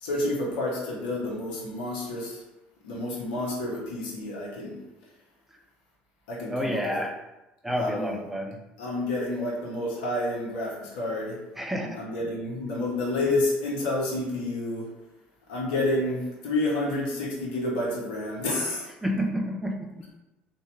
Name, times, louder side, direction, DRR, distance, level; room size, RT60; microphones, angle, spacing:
voice 1, 0.0-2.4 2.8-4.8 6.3-7.0 7.8-8.3 8.8-11.4 11.9-14.9 15.5-18.9, left 2 dB, 65° left, -4 dB, 0.9 m, -29 dB
voice 2, 6.5-7.2 7.6-8.6 11.6-12.0 19.0-20.2, equal, 5° right, 2 dB, 0.6 m, -29 dB
3.4 x 2.7 x 3.2 m, 0.99 s
figure-of-eight pair, 60°, 5 cm